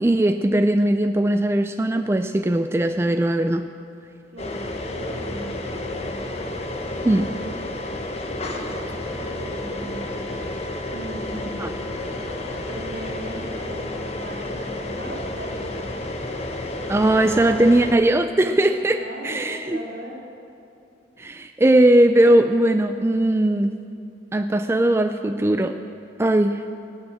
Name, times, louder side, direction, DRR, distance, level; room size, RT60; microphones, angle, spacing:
voice 1, 0.0-3.7 7.0-7.3 11.6-11.7 16.9-19.8 21.2-23.7 24.3-25.8 26.2-26.6, right 1 dB, 15° right, 7 dB, 0.3 m, -19 dB
voice 2, 4.3-6.2 8.6-10.5 10.9-11.8 12.7-15.9 19.0-20.2, right 1 dB, 70° right, -2 dB, 2.8 m, -38 dB
sound 1, 4.4-17.9, left 1 dB, 35° left, 1.1 m, -31 dB
18.0 x 6.2 x 8.5 m, 2.6 s
head